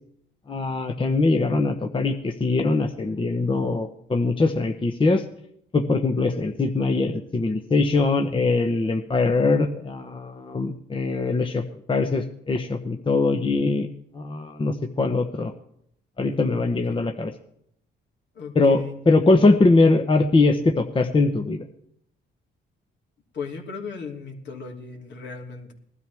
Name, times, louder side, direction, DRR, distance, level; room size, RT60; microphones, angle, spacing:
voice 1, 0.5-5.2 5.7-13.9 14.1-15.5 16.2-17.3 18.5-21.7, left 3 dB, 25° left, 4 dB, 1.1 m, -22 dB
voice 2, 16.5-17.1 18.3-18.9 23.3-25.7, left 5 dB, 65° left, 0 dB, 3.0 m, -36 dB
19.5 x 12.5 x 3.5 m, 0.70 s
cardioid pair, 90°, 20 cm